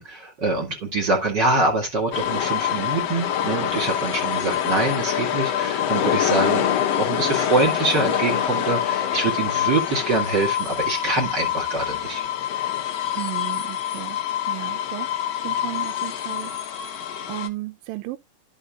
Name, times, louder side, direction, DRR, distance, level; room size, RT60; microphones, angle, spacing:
voice 1, 0.0-12.2, right 3 dB, 35° right, 2.5 m, -24 dB
sound 1, 2.1-17.5, left 10 dB, 70° left, 1.7 m, -25 dB
voice 2, 13.1-14.2 14.5-15.1 15.4-16.5 17.3-18.2, right 19 dB, 85° right, 2.4 m, -34 dB
13.0 x 5.3 x 2.4 m
omnidirectional pair, 4.0 m